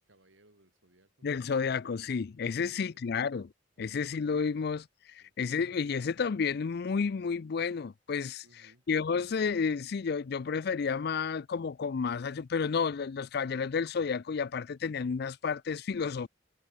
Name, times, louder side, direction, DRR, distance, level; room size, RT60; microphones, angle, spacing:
voice 1, 0.0-1.6 2.6-3.3 5.2-5.3 8.4-8.8, right 1 dB, 80° right, 6.6 m, -65 dB
voice 2, 1.2-3.5 3.8-16.3, left 5 dB, 55° left, 0.4 m, -31 dB
head